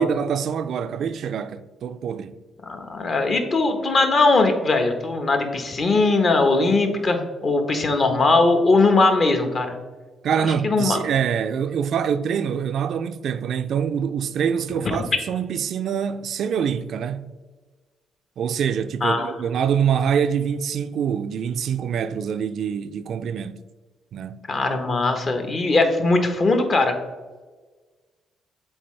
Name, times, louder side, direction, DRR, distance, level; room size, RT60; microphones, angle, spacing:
voice 1, 0.0-2.3 10.2-17.3 18.4-23.6 24.1-24.4, right 7 dB, 65° right, 0.3 m, -25 dB
voice 2, 2.6-9.8 10.6-11.0 19.0-19.3 24.5-27.0, left 3 dB, 45° left, 1.0 m, -20 dB
7.8 x 3.8 x 3.2 m
cardioid pair, 90°, 0 cm